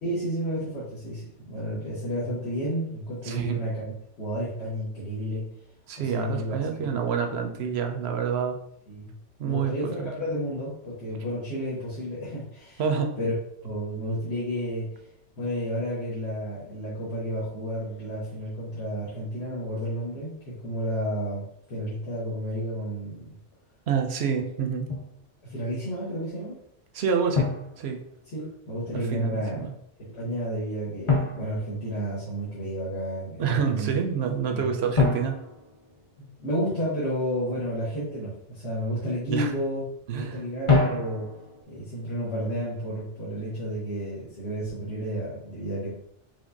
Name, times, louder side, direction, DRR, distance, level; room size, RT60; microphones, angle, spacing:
voice 1, 0.0-3.9 4.2-5.5 6.0-6.9 8.9-9.1 9.4-12.8 13.2-13.3 13.6-14.9 15.4-21.4 21.7-23.3 25.4-26.6 28.3-29.7 30.0-33.9 34.5-34.7 36.2-39.8 40.1-41.3 41.7-45.9, equal, 65° left, -7 dB, 1.4 m, -31 dB
voice 2, 3.2-3.6 5.9-8.6 9.4-9.7 10.0-10.1 12.8-13.1 23.9-24.9 26.9-27.5 27.8-28.0 28.9-29.7 33.4-35.4 39.3-39.5 40.1-40.4, right 6 dB, 65° right, 5 dB, 0.9 m, -27 dB
Drum, 24.9-25.2 27.3-28.5 31.1-32.5 35.0-36.7 40.7-41.6, left 3 dB, 30° left, 0.8 m, -27 dB
5.0 x 3.3 x 2.7 m, 0.73 s
omnidirectional pair, 1.2 m